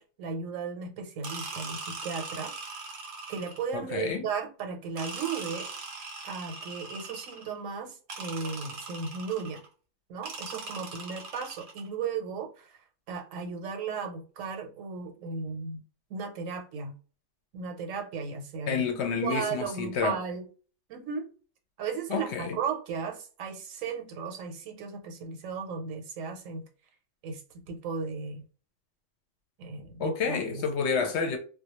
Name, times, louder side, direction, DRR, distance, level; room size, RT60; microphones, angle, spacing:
voice 1, 0.0-2.5 3.3-5.7 6.2-9.6 10.1-12.8 13.1-15.8 16.1-16.9 17.5-18.8 19.2-20.5 20.9-21.3 21.8-26.6 27.2-28.4 29.6-30.6, right 5 dB, 85° right, 1.0 m, -35 dB
sound 1, 1.2-3.8 5.0-7.6 8.1-9.7 10.2-11.9, right 3 dB, 50° right, 0.7 m, -40 dB
voice 2, 3.7-4.3 18.7-20.2 22.1-22.6 30.0-31.4, left 6 dB, 65° left, 0.8 m, -29 dB
2.2 x 2.2 x 2.8 m
omnidirectional pair, 1.3 m